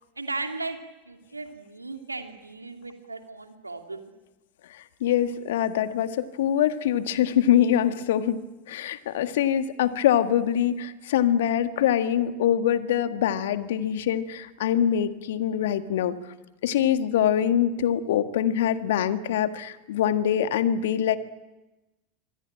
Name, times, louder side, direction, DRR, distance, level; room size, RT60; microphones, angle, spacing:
voice 1, 0.2-0.8 1.1-4.1, right 3 dB, 90° right, 5 dB, 2.6 m, -36 dB
voice 2, 5.0-8.4 8.7-16.1 16.6-21.2, left 10 dB, 65° left, 10 dB, 1.7 m, -24 dB
26.0 x 24.0 x 9.0 m, 1.1 s
figure-of-eight pair, 75°, 0 cm